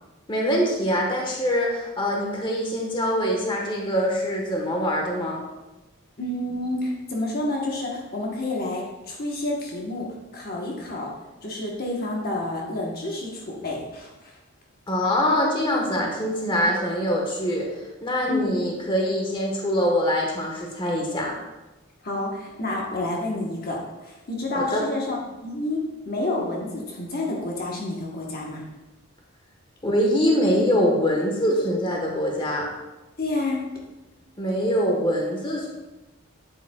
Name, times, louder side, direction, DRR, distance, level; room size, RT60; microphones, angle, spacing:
voice 1, 0.3-5.4 14.9-21.3 24.5-24.8 29.8-32.7 34.4-35.7, equal, 20° left, -1 dB, 1.2 m, -24 dB
voice 2, 6.2-10.1 10.3-11.1 11.4-14.4 18.3-18.5 22.0-25.2 25.4-25.8 26.1-28.6 33.2-33.6, left 2 dB, 45° left, -2 dB, 1.1 m, -29 dB
8.8 x 7.9 x 2.3 m, 1.1 s
head